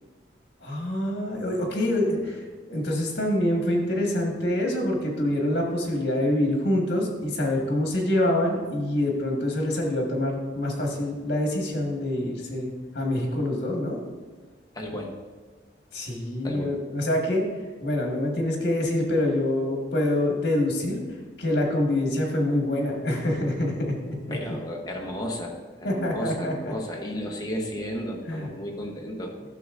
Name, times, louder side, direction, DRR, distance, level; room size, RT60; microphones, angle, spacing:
voice 1, 0.6-2.4 2.7-14.0 15.9-17.4 17.8-21.0 21.4-24.4 25.8-26.7 28.3-28.5, left 1 dB, 55° left, 0 dB, 1.6 m, -26 dB
voice 2, 14.7-15.1 16.4-16.7 24.3-29.5, equal, 20° left, 0 dB, 0.9 m, -33 dB
11.5 x 6.4 x 2.5 m, 1.4 s
head